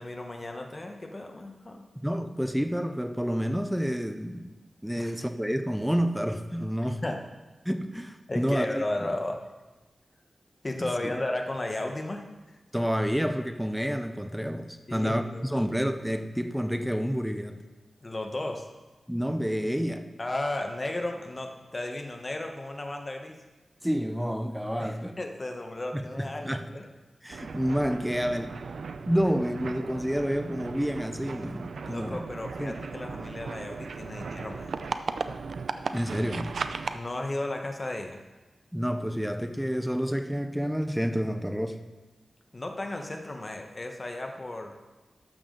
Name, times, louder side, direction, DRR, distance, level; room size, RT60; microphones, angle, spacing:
voice 1, 0.0-1.8 5.0-5.1 7.0-7.2 8.3-9.4 10.6-12.6 14.9-15.7 18.0-18.7 20.2-23.4 24.8-26.9 31.9-34.7 36.9-38.2 42.5-44.7, left 2 dB, 30° left, 1.1 m, -34 dB
voice 2, 2.0-4.5 4.8-7.0 7.7-8.8 10.8-11.1 12.7-17.6 19.1-20.1 23.8-25.1 25.9-26.7 27.2-28.6 29.1-32.2 32.6-32.7 35.9-36.6 38.7-41.8, equal, ahead, 0.5 m, -29 dB
sound 1, 27.3-37.0, right 4 dB, 85° right, 0.4 m, -37 dB
12.5 x 7.1 x 3.8 m
wide cardioid pair, 90°, 0 cm